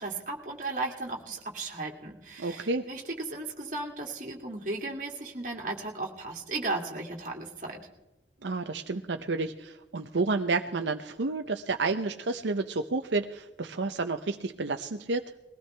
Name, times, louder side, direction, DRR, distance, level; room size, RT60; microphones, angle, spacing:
voice 1, 0.0-7.8, right 2 dB, 45° right, 1 dB, 2.4 m, -35 dB
voice 2, 2.4-2.9 8.4-15.2, right 3 dB, 80° right, 6 dB, 0.7 m, -30 dB
21.0 x 16.5 x 3.4 m, 1.0 s
head